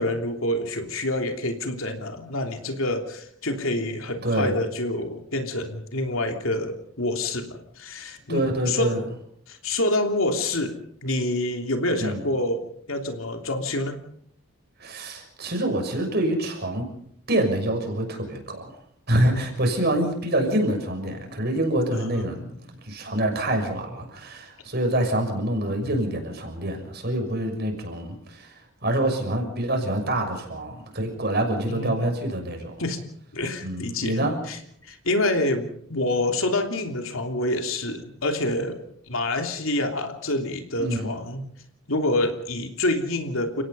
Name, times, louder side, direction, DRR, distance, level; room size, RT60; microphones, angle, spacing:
voice 1, 0.0-9.0 9.5-14.0 19.3-19.5 21.9-22.6 31.7-32.1 32.8-33.0 33.3-38.8 39.1-41.4 41.9-43.6, left 1 dB, 70° left, 5 dB, 3.1 m, -27 dB
voice 2, 4.2-4.6 8.3-9.0 12.0-12.2 14.8-16.9 17.3-18.7 19.1-22.5 22.8-32.7 33.6-34.4 40.8-41.1, right 1 dB, 50° right, 3 dB, 6.4 m, -26 dB
30.0 x 17.5 x 5.6 m, 0.68 s
head